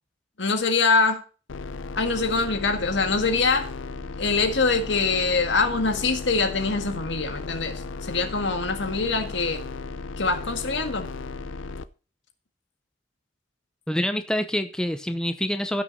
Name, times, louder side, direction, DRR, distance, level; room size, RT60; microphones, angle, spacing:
voice 1, 0.4-1.2 2.0-3.7 4.2-9.6 10.2-11.1, left 4 dB, 65° left, 6 dB, 1.8 m, -24 dB
sound 1, 1.5-11.8, left 3 dB, 85° left, 0.6 m, -35 dB
voice 2, 13.9-15.8, equal, 5° left, 8 dB, 0.7 m, -26 dB
16.0 x 6.1 x 4.1 m, 0.36 s
head